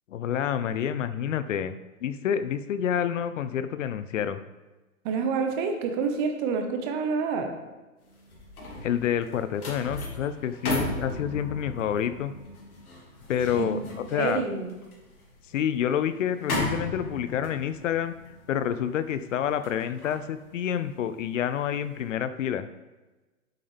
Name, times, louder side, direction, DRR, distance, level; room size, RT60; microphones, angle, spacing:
voice 1, 0.1-4.4 8.8-12.3 13.3-13.8 14.1-14.4 15.5-18.1 18.5-22.7, left 9 dB, 60° left, 12 dB, 0.6 m, -28 dB
voice 2, 5.0-7.5 13.6-13.9 14.1-14.8, right 5 dB, 35° right, 5 dB, 1.2 m, -28 dB
sound 1, 8.1-21.4 21.8-22.1, left 1 dB, 80° left, 3.1 m, -36 dB
8.5 x 7.9 x 3.4 m, 1.2 s
hypercardioid pair, 125°, 43 cm